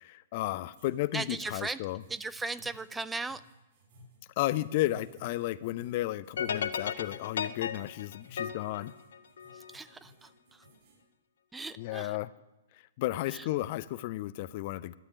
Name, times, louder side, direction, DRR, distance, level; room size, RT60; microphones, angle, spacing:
voice 1, 0.0-2.0 4.4-8.9 11.8-12.3 13.0-15.0, left 16 dB, 45° left, 16 dB, 0.5 m, -33 dB
sound 1, 0.8-11.0, left 2 dB, 50° right, 6.9 m, -56 dB
voice 2, 1.1-1.8 2.1-3.4 9.7-10.3 11.5-12.2 13.3-13.5, right 3 dB, 10° right, 15 dB, 0.4 m, -37 dB
sound 2, 6.4-9.7, left 7 dB, 65° left, 0.9 m, -35 dB
12.0 x 9.4 x 10.0 m, 1.0 s
figure-of-eight pair, 115°, 0 cm